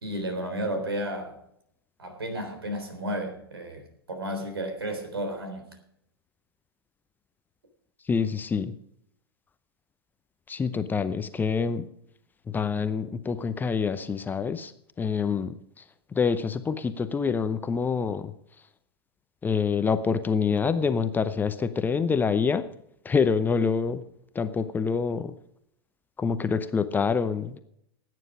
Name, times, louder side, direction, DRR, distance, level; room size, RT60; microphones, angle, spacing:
voice 1, 0.0-1.4 2.0-5.7, right 1 dB, 70° right, 7 dB, 3.8 m, -32 dB
voice 2, 8.1-8.7 10.5-11.9 12.5-14.7 15.0-15.6 16.1-18.3 19.4-22.6 23.0-24.0 24.3-25.3 26.2-27.6, left 5 dB, 15° left, 11 dB, 0.7 m, -26 dB
16.5 x 9.6 x 4.9 m, 0.72 s
figure-of-eight pair, 95°, 13 cm